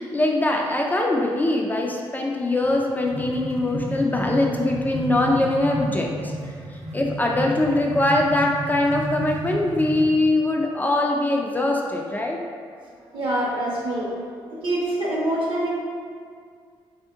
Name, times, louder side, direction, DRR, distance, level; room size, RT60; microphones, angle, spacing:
voice 1, 0.0-6.1 6.9-12.4, left 2 dB, 20° left, 0 dB, 0.3 m, -22 dB
sound 1, 2.6-10.2, right 1 dB, 75° right, 0.7 m, -32 dB
voice 2, 13.0-15.7, right 1 dB, 60° right, -5 dB, 1.1 m, -26 dB
3.6 x 2.6 x 3.5 m, 2.1 s
cardioid pair, 105°, 10 cm